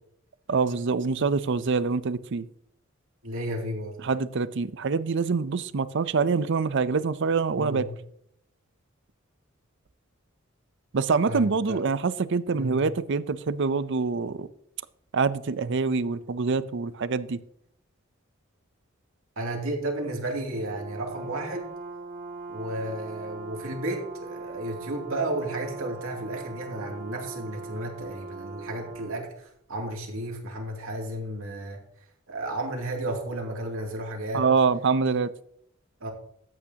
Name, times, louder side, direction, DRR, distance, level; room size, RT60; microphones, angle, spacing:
voice 1, 0.5-2.5 4.0-7.9 10.9-14.5 15.1-17.4 34.3-35.3, right 4 dB, 60° right, 0.5 m, -25 dB
voice 2, 3.2-4.0 7.5-7.9 11.3-11.8 12.5-12.8 19.4-21.7 22.5-31.8 32.3-34.4 36.0-36.1, right 1 dB, 90° right, 2.7 m, -33 dB
Brass instrument, 20.5-29.2, right 3 dB, 40° right, 2.4 m, -40 dB
13.5 x 8.6 x 2.9 m
head